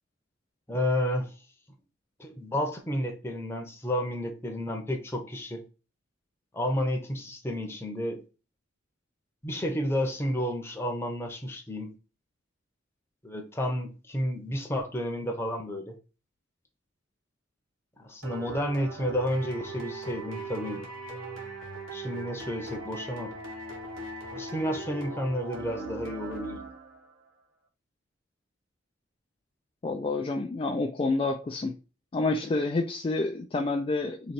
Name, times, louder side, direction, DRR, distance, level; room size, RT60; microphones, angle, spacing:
voice 1, 0.7-1.3 2.2-5.6 6.5-8.2 9.4-11.9 13.2-15.9 18.0-20.8 21.9-23.3 24.3-26.7, equal, 10° left, 0.7 m, -31 dB
sound 1, 18.2-27.1, right 2 dB, 85° right, 1.5 m, -40 dB
voice 2, 29.8-31.7 32.1-34.3, left 3 dB, 25° left, 0.3 m, -28 dB
3.1 x 3.0 x 4.2 m
head